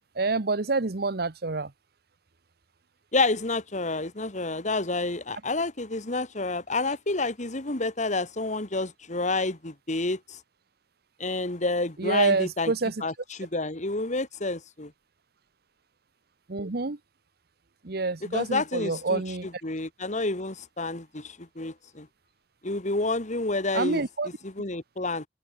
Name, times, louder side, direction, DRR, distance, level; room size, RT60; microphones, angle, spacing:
voice 1, 0.1-1.7 12.0-13.0 16.5-17.0 17.8-19.5 23.7-24.3, right 3 dB, 60° right, 1.0 m, -27 dB
voice 2, 3.1-10.4 11.2-12.7 13.0-14.9 18.3-19.2 19.6-22.1 22.6-24.0 24.4-25.3, left 2 dB, 45° left, 2.2 m, -29 dB
open air
head